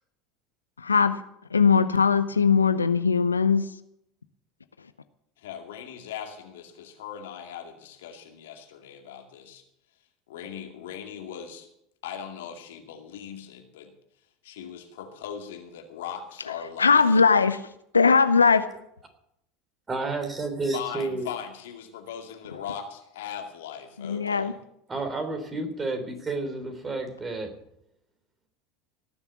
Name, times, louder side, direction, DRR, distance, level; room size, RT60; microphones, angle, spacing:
voice 1, 0.8-1.1 1.5-3.6 16.8-17.6 17.9-18.7 24.0-24.5, left 5 dB, 85° left, 0.6 m, -20 dB
voice 2, 5.4-9.6 10.3-11.7 12.0-13.9 14.4-17.0 20.7-24.5, left 8 dB, 70° left, 2.3 m, -39 dB
voice 3, 19.9-21.3 24.9-27.5, right 3 dB, 20° right, 3.5 m, -30 dB
18.5 x 7.1 x 8.2 m
figure-of-eight pair, 75°, 0 cm